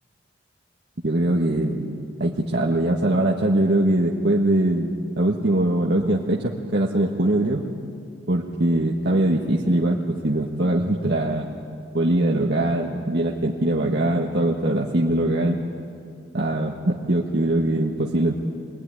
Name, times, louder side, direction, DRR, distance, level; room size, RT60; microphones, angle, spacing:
voice 1, 1.0-4.9 5.2-7.6 8.3-11.5 11.9-15.6 16.3-18.3, right 1 dB, 60° right, -2 dB, 1.6 m, -22 dB
24.5 x 19.5 x 10.0 m, 2.4 s
head